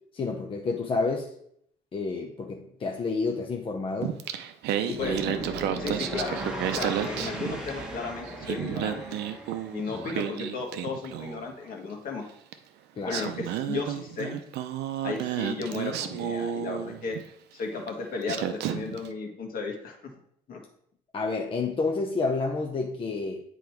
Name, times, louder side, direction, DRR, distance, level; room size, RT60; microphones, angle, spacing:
voice 1, 0.1-1.3 1.9-4.2 4.9-5.1 10.0-10.1 13.0-13.3 21.1-23.4, left 3 dB, 30° left, 1 dB, 0.8 m, -29 dB
Singing, 4.0-8.0 8.3-11.5 12.5-12.6 13.1-17.3 17.9-18.0 18.3-19.1, right 10 dB, 80° right, 0.6 m, -32 dB
sound 1, 4.8-10.0, right 1 dB, 5° right, 1.3 m, -37 dB
voice 2, 5.0-5.4 5.8-6.4 6.7-9.2 9.7-12.2 13.1-14.4 15.0-17.2 17.5-20.0 20.5-20.6, left 4 dB, 55° left, 1 dB, 1.7 m, -34 dB
8.1 x 3.9 x 4.6 m, 0.70 s
cardioid pair, 110°, 17 cm